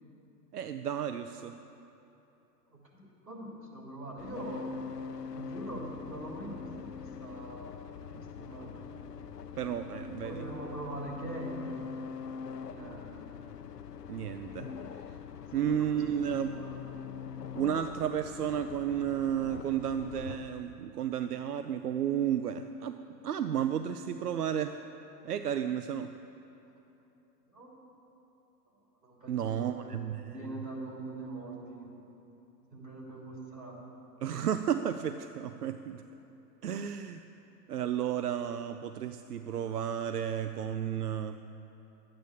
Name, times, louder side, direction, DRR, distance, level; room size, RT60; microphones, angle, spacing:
voice 1, 0.5-1.5 8.1-8.2 9.6-10.4 14.1-14.7 15.5-16.6 17.6-24.8 25.2-26.1 29.3-30.5 34.2-36.0 36.6-37.2 37.7-41.4, right 9 dB, 65° right, 9 dB, 0.6 m, -32 dB
voice 2, 2.7-4.7 5.3-7.9 8.3-8.7 10.2-11.8 12.7-13.1 15.5-16.8 27.5-27.7 29.0-29.8 30.3-32.0 32.7-33.8, right 1 dB, 85° right, -3 dB, 3.5 m, -43 dB
sound 1, 4.2-20.4, left 6 dB, 70° left, 0.7 m, -43 dB
12.5 x 8.8 x 7.1 m, 2.9 s
figure-of-eight pair, 105°, 49 cm